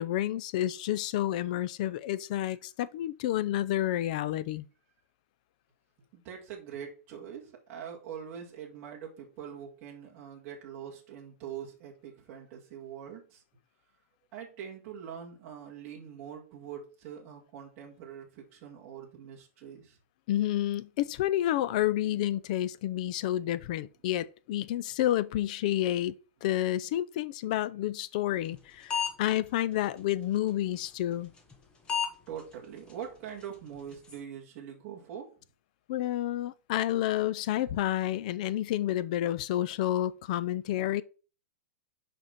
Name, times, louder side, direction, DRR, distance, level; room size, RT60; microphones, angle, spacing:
voice 1, 0.0-4.7 20.3-26.1 26.4-31.3 35.9-41.0, left 13 dB, 30° left, 0.4 m, -30 dB
voice 2, 6.1-13.4 14.3-20.0 32.3-35.3, right 8 dB, 25° right, 1.9 m, -43 dB
sound 1, 28.5-28.6 28.9-29.3 29.8-29.9 31.4-31.6 31.9-32.1 32.4-32.5 32.9-33.0 33.4-33.5 33.7-34.2, left 7 dB, 10° left, 1.0 m, -30 dB
6.2 x 5.3 x 5.8 m
supercardioid pair, 180°, 8 cm